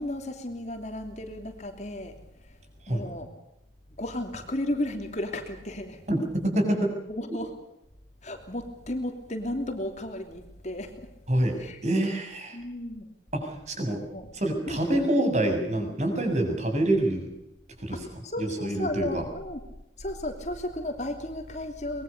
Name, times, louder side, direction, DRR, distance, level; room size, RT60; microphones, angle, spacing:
voice 1, 0.0-3.3 4.0-6.0 7.1-7.5 8.2-11.1 11.6-11.8 12.5-13.1 14.1-14.3 14.7-14.8 17.9-19.6 20.0-22.0, left 1 dB, 40° left, 6 dB, 3.0 m, -34 dB
voice 2, 6.1-6.9 11.3-11.6 11.8-12.6 13.3-14.0 14.3-17.3 17.8-18.0 18.4-19.2, right 1 dB, 35° right, 4 dB, 7.0 m, -26 dB
24.5 x 21.5 x 6.8 m, 0.86 s
head